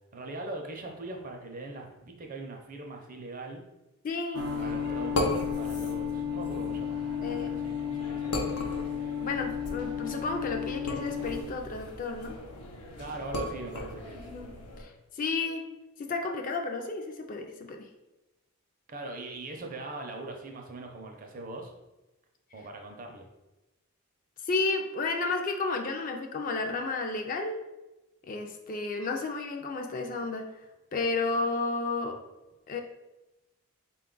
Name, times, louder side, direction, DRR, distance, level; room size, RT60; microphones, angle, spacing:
voice 1, 0.1-3.6 4.5-8.3 13.0-14.3 18.9-21.7 22.5-23.3, right 2 dB, 35° right, 2 dB, 0.5 m, -41 dB
voice 2, 4.0-4.5 7.2-7.6 9.2-12.4 14.1-15.7 16.0-17.9 24.4-27.6 28.3-30.4 30.9-32.2 32.7-32.8, left 3 dB, 35° left, 4 dB, 0.3 m, -32 dB
sound 1, 4.3-11.4, left 8 dB, 90° right, 0.5 m, -33 dB
sound 2, 4.4-14.8, left 1 dB, 90° left, 0.6 m, -38 dB
4.0 x 2.3 x 3.7 m, 1.0 s
head